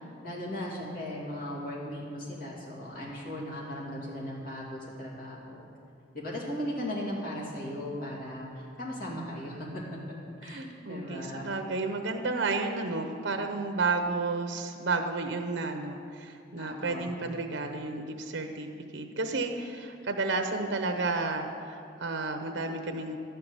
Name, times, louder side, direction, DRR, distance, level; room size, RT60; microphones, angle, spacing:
voice 1, 0.2-5.7 6.1-9.8 10.4-11.5 16.6-17.2, equal, 50° left, -4 dB, 2.7 m, -37 dB
voice 2, 10.4-23.2, right 3 dB, 75° right, 5 dB, 0.9 m, -32 dB
11.5 x 5.8 x 8.2 m, 2.6 s
head